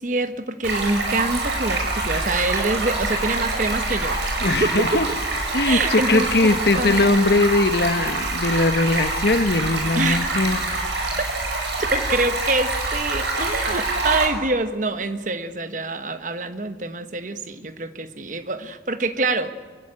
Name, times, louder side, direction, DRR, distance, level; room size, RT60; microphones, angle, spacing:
voice 1, 0.0-4.2 4.6-4.9 5.6-7.0 9.9-10.4 11.8-19.5, right 2 dB, 45° right, 10 dB, 1.2 m, -25 dB
Stream, 0.6-14.3, right 2 dB, 90° right, 5.9 m, -25 dB
voice 2, 4.4-5.1 5.5-10.7, left 2 dB, 65° left, 11 dB, 1.1 m, -20 dB
26.0 x 15.5 x 9.9 m, 1.4 s
head